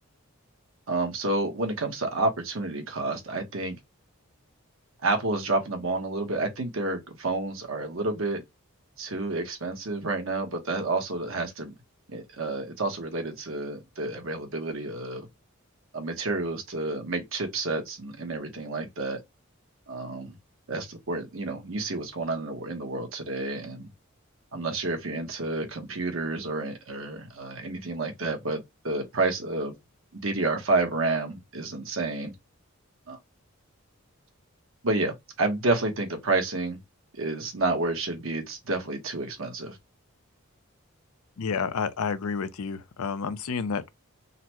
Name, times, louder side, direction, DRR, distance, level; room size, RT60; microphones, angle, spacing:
voice 1, 0.9-3.8 5.0-8.4 9.0-11.7 12.1-15.3 15.9-19.2 19.9-20.4 20.7-23.9 24.5-29.8 30.1-32.3 33.1-33.2 34.8-36.8 37.1-39.8, right 2 dB, 65° right, 1.0 m, -30 dB
voice 2, 41.4-43.9, left 5 dB, 85° left, 0.5 m, -30 dB
3.8 x 2.1 x 2.8 m
head